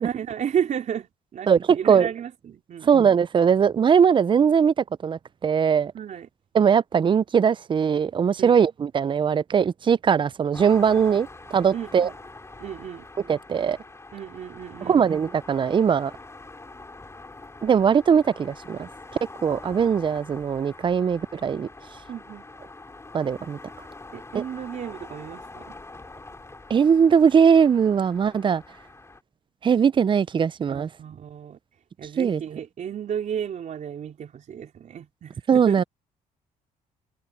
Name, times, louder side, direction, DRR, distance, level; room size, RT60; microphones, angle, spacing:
voice 1, 0.0-2.9 5.9-6.3 8.4-8.6 11.7-12.1 12.6-13.1 14.1-15.0 22.1-22.5 24.1-25.8 30.7-31.6 32.0-35.8, right 8 dB, 55° right, 4.3 m, -33 dB
voice 2, 1.5-2.1 2.9-4.7 5.0-5.9 6.5-12.1 13.3-13.8 14.8-16.1 17.6-18.9 19.4-21.7 23.1-23.6 24.3-24.4 26.7-28.6 29.6-30.9 32.2-32.4 35.5-35.8, right 7 dB, 35° right, 0.5 m, -20 dB
sound 1, 10.5-29.2, left 2 dB, 20° left, 5.1 m, -44 dB
cardioid pair, 85°, 15 cm